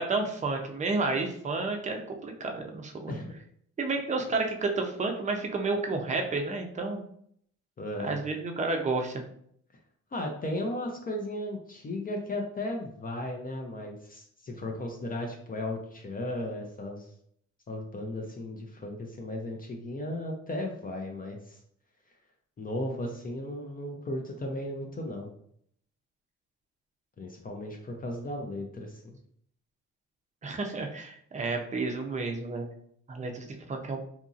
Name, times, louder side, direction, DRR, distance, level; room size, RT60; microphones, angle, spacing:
voice 1, 0.0-3.1 3.8-7.0 8.0-9.2 30.4-32.7 33.1-34.0, right 3 dB, 25° right, 3 dB, 0.5 m, -31 dB
voice 2, 7.8-8.2 10.1-17.1 17.7-21.6 22.6-25.3 27.2-29.0, left 1 dB, 30° left, 1 dB, 0.5 m, -35 dB
2.9 x 2.6 x 2.4 m, 0.66 s
cardioid pair, 90°, 30 cm